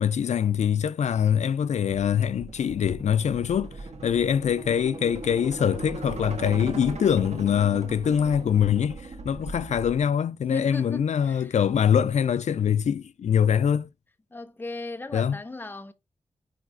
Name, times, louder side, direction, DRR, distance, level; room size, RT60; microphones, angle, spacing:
voice 1, 0.0-13.9 15.1-15.4, left 8 dB, 75° left, 0.4 m, -24 dB
sound 1, 1.8-10.0, right 3 dB, 70° right, 1.4 m, -39 dB
voice 2, 10.5-11.6 14.3-15.9, left 2 dB, 15° left, 0.7 m, -37 dB
9.2 x 3.3 x 3.8 m
wide cardioid pair, 150°, 12 cm